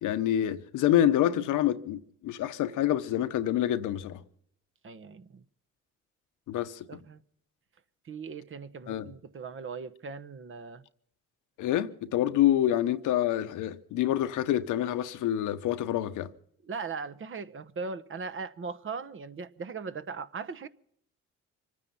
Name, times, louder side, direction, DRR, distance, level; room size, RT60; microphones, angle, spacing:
voice 1, 0.0-4.2 6.5-7.0 8.9-9.1 11.6-16.3, left 12 dB, 85° left, 1.0 m, -27 dB
voice 2, 4.8-5.4 6.9-7.2 8.0-10.8 16.7-20.7, right 5 dB, 45° right, 1.1 m, -39 dB
25.5 x 9.7 x 5.7 m
cardioid pair, 90°, 30 cm